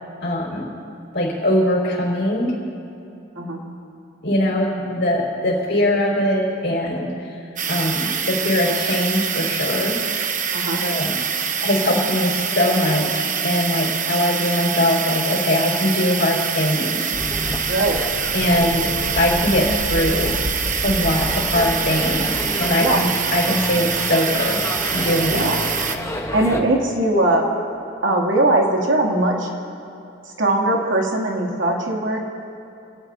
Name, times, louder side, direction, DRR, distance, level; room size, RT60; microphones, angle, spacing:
voice 1, 0.2-0.7 1.1-2.5 4.2-10.0 10.8-11.2 11.6-17.1 18.3-20.4 20.8-24.6 24.9-25.5, left 1 dB, 60° left, -2 dB, 4.4 m, -21 dB
sound 1, 7.6-26.0, right 7 dB, 40° right, 0.9 m, -25 dB
sound 2, 17.1-26.6, left 1 dB, 15° left, 1.0 m, -29 dB
voice 2, 17.7-18.0 22.8-23.0 25.3-25.6 26.3-27.5 28.0-29.5 30.4-32.2, right 1 dB, 80° right, -1 dB, 2.6 m, -20 dB
27.0 x 18.0 x 2.8 m, 2.7 s
head